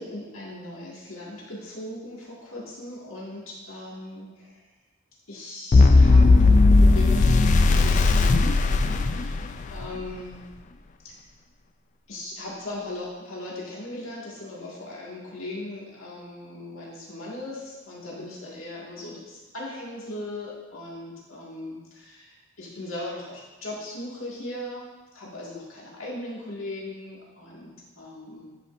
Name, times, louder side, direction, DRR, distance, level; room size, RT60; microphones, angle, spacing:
voice 1, 0.0-4.6 5.3-10.4 12.1-28.5, left 1 dB, 90° left, -5 dB, 2.0 m, -38 dB
sound 1, 5.7-9.8, left 3 dB, 40° left, 0.3 m, -17 dB
10.5 x 5.2 x 2.6 m, 1.1 s
head